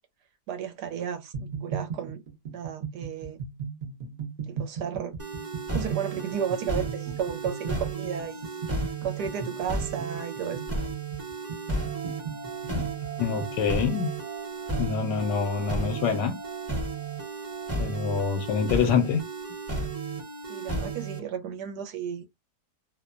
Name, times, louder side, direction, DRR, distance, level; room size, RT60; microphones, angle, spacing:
voice 1, 0.5-2.2 2.5-3.4 4.5-5.1 5.7-10.6 20.5-22.3, right 8 dB, 75° right, 1.1 m, -33 dB
sound 1, 1.3-13.6, right 6 dB, 60° right, 0.5 m, -37 dB
sound 2, 5.2-21.2, right 3 dB, 15° right, 0.6 m, -34 dB
sound 3, 11.7-18.8, right 11 dB, 60° left, 0.9 m, -44 dB
voice 2, 13.2-14.1 14.8-16.4 17.8-19.2, left 6 dB, 80° left, 1.2 m, -26 dB
2.9 x 2.1 x 2.4 m
omnidirectional pair, 1.9 m